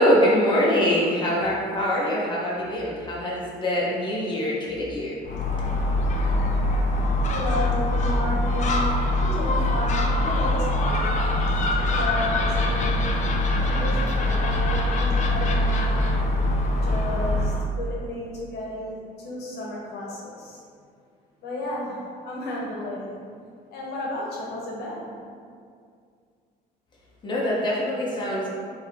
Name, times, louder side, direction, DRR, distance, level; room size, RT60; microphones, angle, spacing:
voice 1, 0.0-5.2 27.2-28.5, equal, 25° left, -5 dB, 1.0 m, -23 dB
Gull seagull, 5.2-17.7, left 1 dB, 45° left, 0.5 m, -23 dB
voice 2, 7.3-11.3 11.8-13.0 13.6-16.2 16.8-20.6 21.4-23.2 23.7-25.1, left 1 dB, 75° left, -4 dB, 1.0 m, -33 dB
4.5 x 2.9 x 3.6 m, 2.2 s
cardioid pair, 110°, 17 cm